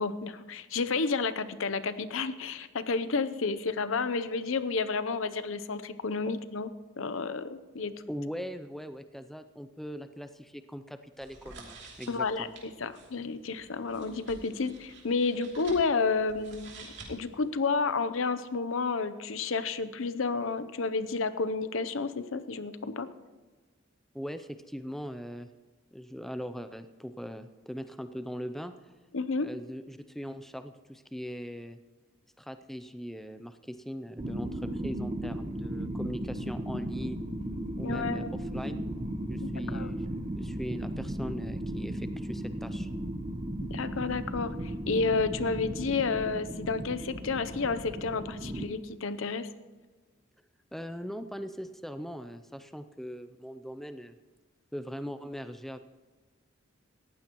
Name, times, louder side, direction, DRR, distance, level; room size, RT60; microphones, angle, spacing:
voice 1, 0.0-6.7 7.0-7.9 12.1-12.5 12.8-23.1 29.1-29.5 37.8-38.3 39.4-39.9 43.7-49.5, left 4 dB, 80° left, 13 dB, 0.7 m, -31 dB
voice 2, 8.1-12.5 24.1-25.5 25.9-28.7 29.4-31.8 32.4-37.2 37.8-38.8 39.3-40.1 40.3-42.9 50.7-54.2 54.7-55.8, equal, ahead, 10 dB, 0.4 m, -40 dB
sound 1, 11.1-17.5, right 3 dB, 60° right, 2.9 m, -50 dB
sound 2, 34.2-48.6, right 1 dB, 30° right, 0.9 m, -36 dB
18.5 x 15.0 x 3.0 m, 1.3 s
head